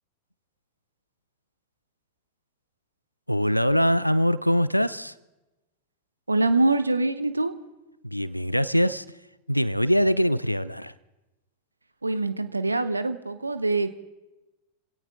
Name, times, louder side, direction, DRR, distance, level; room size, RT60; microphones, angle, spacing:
voice 1, 3.3-5.1 8.0-9.1 9.5-10.9, equal, 90° left, 18 dB, 0.4 m, -23 dB
voice 2, 6.3-7.5 12.0-14.0, right 2 dB, 80° right, 12 dB, 0.8 m, -24 dB
28.5 x 17.5 x 2.4 m, 1.1 s
figure-of-eight pair, 90°, 0 cm